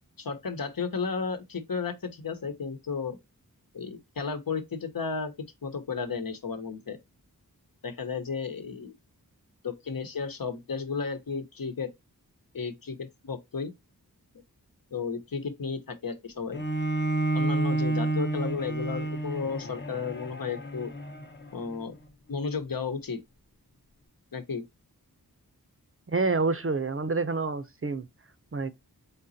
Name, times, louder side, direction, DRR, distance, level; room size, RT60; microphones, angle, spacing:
voice 1, 0.2-3.2 3.7-5.3 5.6-7.0 7.8-8.9 9.6-11.9 12.5-13.7 14.9-16.6 17.3-20.9 21.5-21.9 22.3-23.2 24.3-24.6, left 5 dB, 65° left, 1.0 m, -33 dB
Bowed string instrument, 16.5-21.7, right 2 dB, 30° left, 0.8 m, -30 dB
voice 2, 26.1-28.1 28.5-28.7, right 3 dB, 35° right, 0.6 m, -28 dB
3.9 x 3.8 x 2.7 m
cardioid pair, 45°, 38 cm